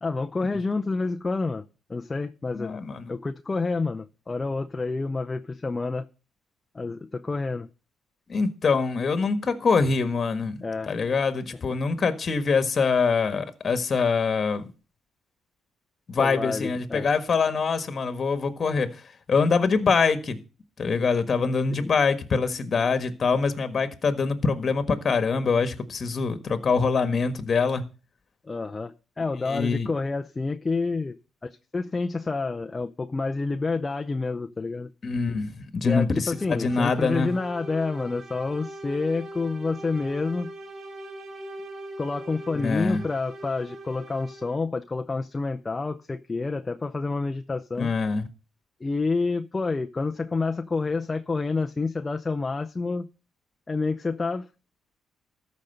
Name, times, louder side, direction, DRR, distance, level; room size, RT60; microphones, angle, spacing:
voice 1, 0.0-2.8 3.1-6.1 6.7-7.7 10.6-10.9 11.5-11.6 16.2-17.1 21.7-21.9 28.4-31.2 31.4-34.9 35.8-40.5 42.0-47.9 48.8-53.1 53.7-54.5, left 3 dB, 25° left, 0.6 m, -28 dB
voice 2, 2.5-3.0 8.3-10.6 10.9-14.7 16.1-18.9 19.3-20.4 20.8-27.8 29.4-29.9 35.0-36.3 36.6-37.3 42.5-43.0 47.8-48.2, left 4 dB, 45° left, 1.5 m, -24 dB
sound 1, 36.4-44.7, right 1 dB, 50° right, 1.7 m, -41 dB
13.5 x 5.3 x 6.6 m
cardioid pair, 90°, 0 cm